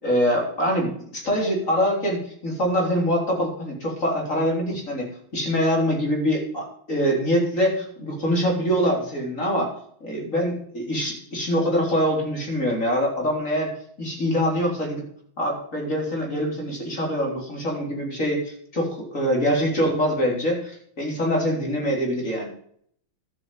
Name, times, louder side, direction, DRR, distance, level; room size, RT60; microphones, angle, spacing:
voice 1, 0.0-9.7 10.0-13.7 14.0-15.0 15.4-22.5, equal, 35° left, -1 dB, 4.2 m, -24 dB
12.5 x 8.0 x 7.5 m, 0.63 s
omnidirectional pair, 2.3 m